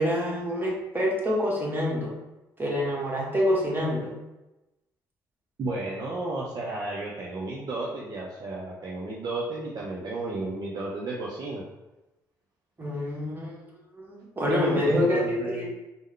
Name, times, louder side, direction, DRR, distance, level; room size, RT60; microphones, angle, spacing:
voice 1, 0.0-2.1 2.6-4.1 12.8-13.5 13.9-15.7, left 1 dB, 20° right, -4 dB, 1.3 m, -26 dB
voice 2, 5.6-11.6 14.9-15.7, right 2 dB, 45° right, -4 dB, 0.6 m, -33 dB
3.5 x 2.1 x 3.2 m, 1.0 s
hypercardioid pair, 45°, 9 cm